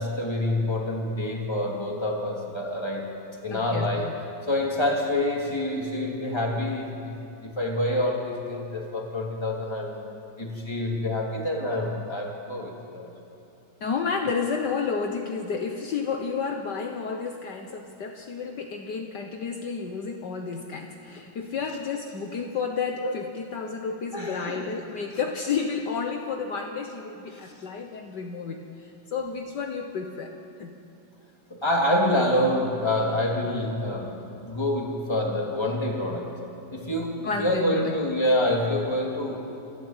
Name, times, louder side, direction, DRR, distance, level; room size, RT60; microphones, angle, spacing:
voice 1, 0.0-4.2 4.5-7.1 7.4-10.1 10.4-13.1 23.0-23.1 24.1-24.6 27.3-27.5 31.5-36.4 36.7-39.4, left 1 dB, 15° left, -1 dB, 3.0 m, -27 dB
voice 2, 3.5-4.1 13.8-30.3 30.6-30.7 37.2-38.0, left 5 dB, 65° left, 3 dB, 1.7 m, -31 dB
26.5 x 13.5 x 9.1 m, 2.8 s
omnidirectional pair, 2.1 m